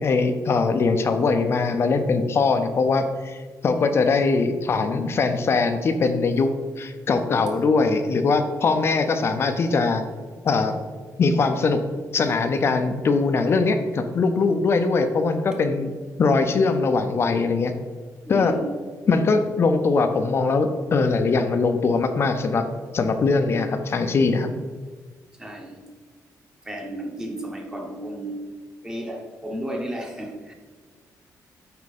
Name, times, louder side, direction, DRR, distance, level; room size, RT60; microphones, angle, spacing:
voice 1, 0.0-6.5 6.8-10.0 10.4-10.8 11.2-11.8 12.1-15.9 16.2-17.7 18.3-18.6 19.1-22.6 22.9-24.5, left 4 dB, 40° left, 7 dB, 0.6 m, -21 dB
voice 2, 18.2-18.8 25.4-25.9 26.6-28.4 28.8-30.5, right 1 dB, 10° right, 1 dB, 1.0 m, -33 dB
9.7 x 4.7 x 4.2 m, 1.5 s
wide cardioid pair, 165°, 7 cm